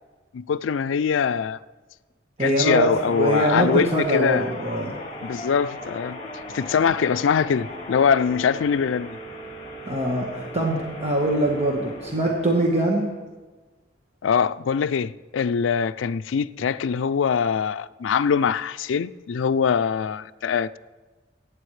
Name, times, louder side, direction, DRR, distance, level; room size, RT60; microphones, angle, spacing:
voice 1, 0.3-1.6 2.4-4.5 5.2-6.2 6.5-9.2 14.2-20.8, left 6 dB, 90° left, 0.4 m, -23 dB
voice 2, 2.4-5.0 9.9-13.1, right 1 dB, 35° right, 1.3 m, -23 dB
sound 1, 2.8-13.2, left 1 dB, 35° left, 1.9 m, -38 dB
23.0 x 9.6 x 3.2 m
head